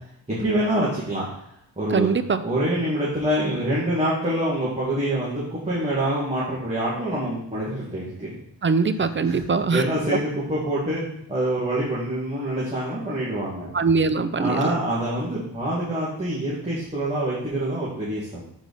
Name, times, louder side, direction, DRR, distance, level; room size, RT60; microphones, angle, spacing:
voice 1, 0.3-1.2 1.8-2.1 2.4-8.3 9.0-9.4 9.7-13.7 14.4-18.4, right 1 dB, 15° right, -8 dB, 1.8 m, -26 dB
voice 2, 1.9-2.4 8.6-9.8 13.7-14.7, right 4 dB, 30° right, 11 dB, 0.3 m, -22 dB
6.8 x 4.7 x 4.0 m, 0.73 s
wide cardioid pair, 110°, 44 cm